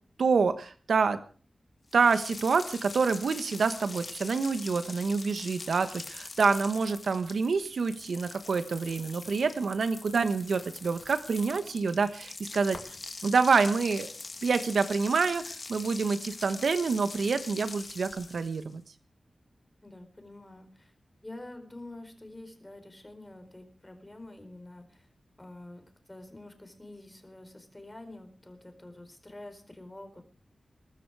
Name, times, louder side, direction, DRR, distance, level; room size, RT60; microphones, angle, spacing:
voice 1, 0.2-1.2 1.9-13.0 13.2-14.1 14.4-18.8, right 4 dB, 85° right, 11 dB, 1.3 m, -27 dB
sound 1, 1.9-18.7, left 3 dB, 50° left, 2.3 m, -43 dB
voice 2, 19.8-20.9 21.2-25.1 25.4-30.2, left 1 dB, 15° left, 7 dB, 4.5 m, -47 dB
22.0 x 13.0 x 4.9 m, 0.41 s
wide cardioid pair, 85°, 0 cm